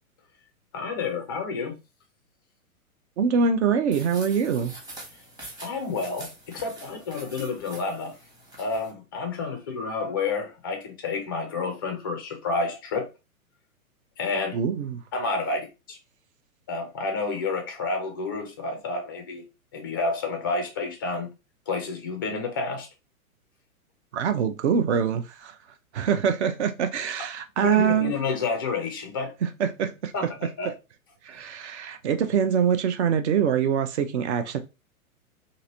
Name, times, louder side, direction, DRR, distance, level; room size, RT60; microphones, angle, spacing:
voice 1, 0.7-1.8 5.6-8.1 8.6-13.1 14.2-14.6 15.1-16.0 16.7-19.4 19.7-21.3 21.7-22.9 27.6-29.3 30.1-30.7, left 4 dB, 20° left, 0.3 m, -29 dB
voice 2, 3.2-4.7 14.5-15.0 24.1-25.6 25.9-28.1 29.4-30.1 31.2-34.6, right 7 dB, 50° right, 0.7 m, -24 dB
sound 1, 3.9-8.9, right 2 dB, 10° right, 0.9 m, -45 dB
2.9 x 2.6 x 2.9 m
figure-of-eight pair, 115°, 43 cm